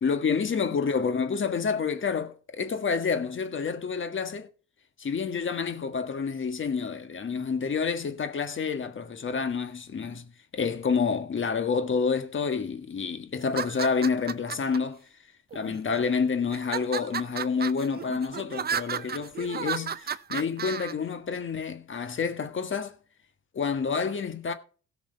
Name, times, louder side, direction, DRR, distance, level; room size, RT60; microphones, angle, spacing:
voice 1, 0.0-4.5 5.0-15.0 15.5-22.9 23.5-24.5, left 5 dB, 40° left, 1.4 m, -28 dB
sound 1, 13.4-14.8 15.5-16.0 16.5-20.9, right 7 dB, 30° right, 0.6 m, -33 dB
16.5 x 6.1 x 4.3 m
cardioid pair, 90°, 30 cm